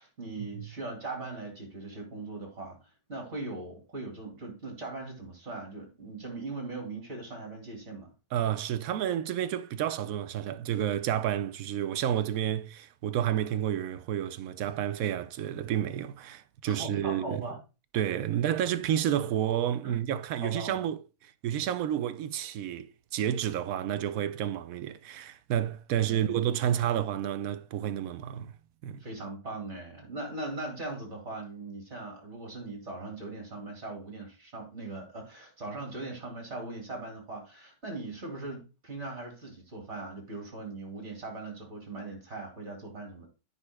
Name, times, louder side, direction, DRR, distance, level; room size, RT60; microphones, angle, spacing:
voice 1, 0.0-8.1 16.6-17.6 19.8-20.0 20.4-20.9 26.1-26.4 29.0-43.3, right 2 dB, 40° right, 3.1 m, -40 dB
voice 2, 8.3-17.4 17.9-28.5 28.8-29.0, right 10 dB, 70° right, 0.9 m, -30 dB
14.0 x 5.5 x 2.3 m
omnidirectional pair, 1.9 m